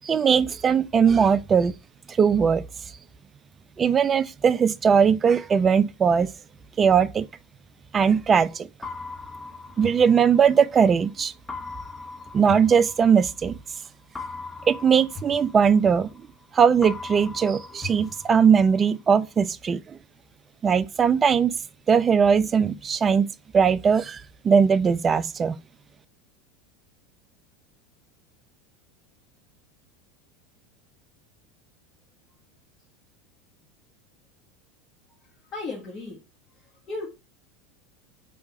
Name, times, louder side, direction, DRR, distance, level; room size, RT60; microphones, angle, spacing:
voice 1, 0.0-1.7 2.2-2.6 3.8-6.3 6.8-7.3 7.9-8.7 9.8-11.3 12.3-13.6 14.7-16.1 16.5-19.8 20.6-21.6 21.9-23.3 23.5-25.5, right 6 dB, 30° right, 0.3 m, -20 dB
sound 1, 8.8-10.9 11.5-13.6 14.2-16.4 16.8-18.9, left 3 dB, 20° left, 0.6 m, -39 dB
voice 2, 35.5-36.2 36.9-37.1, left 3 dB, 40° left, 1.6 m, -34 dB
3.5 x 2.8 x 4.2 m
hypercardioid pair, 90°, 0 cm